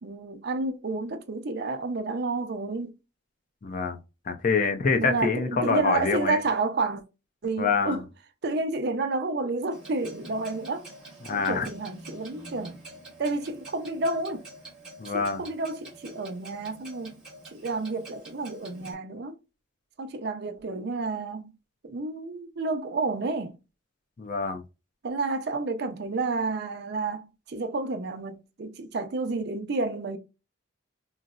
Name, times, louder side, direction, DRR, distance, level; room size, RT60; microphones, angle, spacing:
voice 1, 0.0-3.0 5.0-7.0 7.4-8.1 8.4-10.9 11.3-12.8 13.2-14.5 15.1-17.2 17.5-19.4 20.0-21.5 21.8-23.6 25.0-30.2, right 3 dB, 55° right, 0.5 m, -30 dB
voice 2, 3.6-4.0 4.3-6.4 7.6-8.0 11.3-11.7 15.0-15.4 24.2-24.6, left 4 dB, 40° left, 0.5 m, -26 dB
Clock, 9.7-18.9, right 1 dB, 5° right, 1.1 m, -46 dB
3.9 x 2.0 x 2.3 m
head